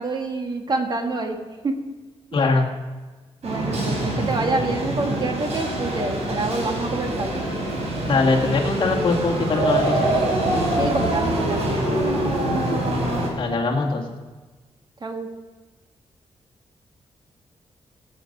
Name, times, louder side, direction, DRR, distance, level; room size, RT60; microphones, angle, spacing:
voice 1, 0.0-1.4 1.6-1.8 3.4-7.3 10.8-12.3 15.0-15.3, right 2 dB, 40° right, 4 dB, 1.5 m, -27 dB
voice 2, 2.3-2.7 8.0-10.2 13.3-14.2, left 3 dB, 50° left, 0 dB, 1.9 m, -22 dB
sound 1, 3.4-13.3, right 1 dB, 80° right, 4.1 m, -24 dB
18.0 x 7.9 x 5.3 m, 1.3 s
wide cardioid pair, 130°, 11 cm